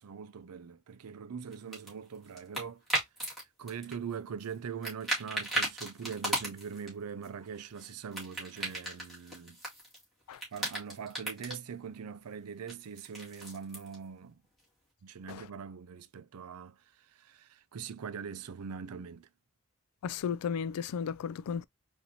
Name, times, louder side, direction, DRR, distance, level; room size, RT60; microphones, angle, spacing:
voice 1, 0.0-2.8 3.6-9.6 10.5-14.4 15.0-19.3, right 6 dB, 80° right, 0.5 m, -42 dB
sound 1, 1.5-3.4 3.7-4.6 4.8-6.9 7.2-10.0 10.3-11.6 12.7-13.9, right 1 dB, ahead, 2.1 m, -36 dB
voice 2, 20.0-21.7, left 7 dB, 85° left, 0.3 m, -34 dB
4.2 x 2.7 x 2.7 m
head